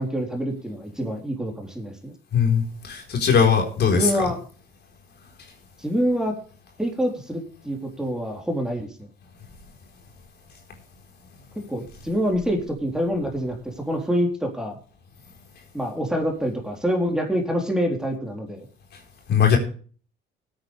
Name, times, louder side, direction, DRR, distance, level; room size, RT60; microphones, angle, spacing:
voice 1, 0.0-2.1 3.9-4.4 5.8-6.3 6.8-9.1 11.7-14.8 15.7-18.7, equal, 5° right, 2 dB, 3.7 m, -26 dB
voice 2, 2.3-4.1 19.3-19.6, left 6 dB, 60° left, 3 dB, 4.2 m, -19 dB
17.0 x 9.0 x 3.3 m, 0.41 s
cardioid pair, 90°, 19 cm